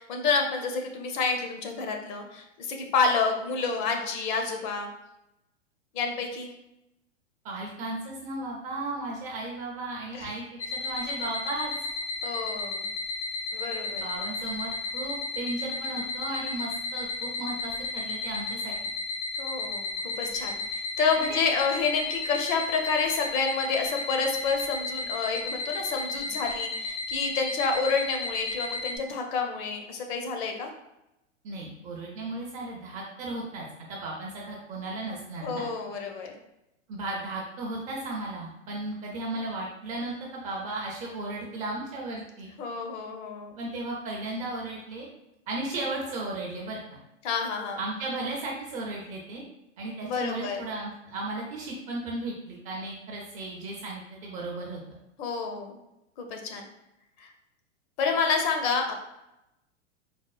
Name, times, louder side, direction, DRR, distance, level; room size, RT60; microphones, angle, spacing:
voice 1, 0.0-4.9 5.9-6.5 10.1-10.3 12.2-12.9 13.5-14.0 19.4-30.7 35.4-36.3 42.6-43.6 47.2-47.8 50.0-50.6 55.2-55.8 56.2-56.7 57.2-57.3 58.0-58.9, left 4 dB, 40° left, 3 dB, 0.5 m, -29 dB
voice 2, 7.4-10.4 10.7-11.7 13.9-18.7 21.2-21.3 31.4-35.6 36.9-42.5 43.6-45.1 45.5-46.8 47.8-49.4 49.8-54.8, right 2 dB, 20° right, -2 dB, 0.4 m, -35 dB
sound 1, 10.6-29.0, left 3 dB, 70° left, 1.3 m, -33 dB
4.2 x 2.0 x 2.3 m, 0.89 s
hypercardioid pair, 105°, 37 cm